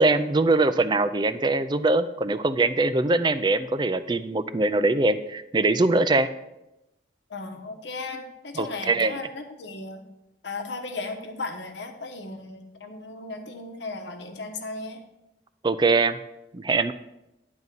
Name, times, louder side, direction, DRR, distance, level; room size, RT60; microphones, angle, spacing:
voice 1, 0.0-6.3 8.6-9.2 15.6-16.2 16.5-16.9, right 2 dB, 25° right, 12 dB, 0.4 m, -22 dB
voice 2, 7.3-10.0 10.4-15.0, left 3 dB, 70° left, 5 dB, 1.0 m, -36 dB
10.5 x 4.0 x 7.4 m, 0.92 s
head